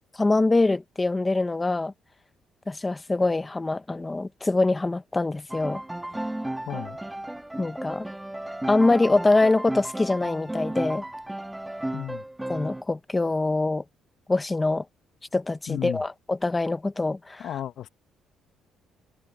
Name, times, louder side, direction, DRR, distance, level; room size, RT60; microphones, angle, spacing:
voice 1, 0.2-1.9 2.7-5.8 7.6-8.1 8.7-11.0 12.5-13.8 14.3-14.8 15.3-17.5, left 2 dB, 15° left, 0.8 m, -24 dB
Piano, 5.5-12.8, right 1 dB, 10° right, 1.5 m, -34 dB
voice 2, 6.7-7.0 11.9-12.2 15.7-16.0 17.4-17.9, left 11 dB, 65° left, 0.7 m, -33 dB
cardioid pair, 100°, 0 cm